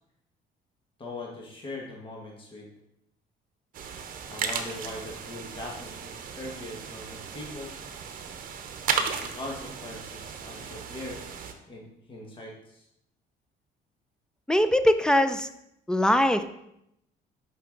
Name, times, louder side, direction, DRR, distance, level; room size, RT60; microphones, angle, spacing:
voice 1, 1.0-2.7 4.3-6.1 6.4-7.7 9.0-11.2 11.7-12.8, left 2 dB, 30° left, -2 dB, 1.5 m, -40 dB
sound 1, 3.7-11.5, right 6 dB, 55° right, 0.8 m, -35 dB
voice 2, 14.5-15.5 15.9-16.4, left 1 dB, 5° left, 10 dB, 0.4 m, -21 dB
5.7 x 5.5 x 3.9 m, 0.79 s
cardioid pair, 110°, 17 cm